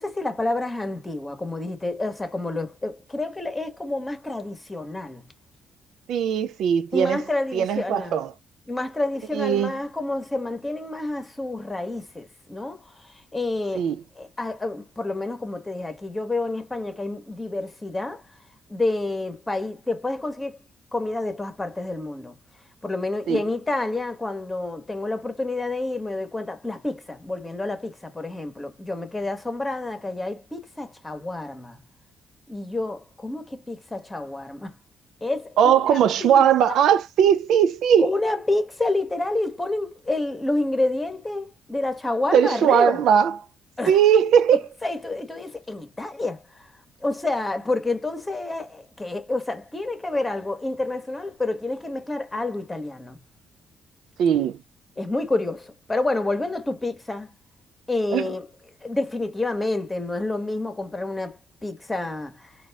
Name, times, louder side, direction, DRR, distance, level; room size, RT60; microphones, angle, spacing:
voice 1, 0.0-5.2 6.9-8.2 8.7-13.9 14.2-18.2 18.7-20.6 20.9-22.3 22.8-31.8 32.5-34.8 35.2-36.4 38.0-43.0 43.8-44.0 44.5-46.7 47.0-53.2 55.0-57.3 57.9-58.5 58.8-62.5, left 2 dB, 15° left, 1.2 m, -29 dB
voice 2, 6.1-7.2 7.5-8.3 9.3-9.7 13.7-14.0 23.3-23.4 35.6-38.1 42.3-43.3 43.9-44.6 54.2-54.6 58.1-58.3, right 8 dB, 80° right, 0.4 m, -19 dB
4.0 x 2.5 x 3.5 m
cardioid pair, 90°, 0 cm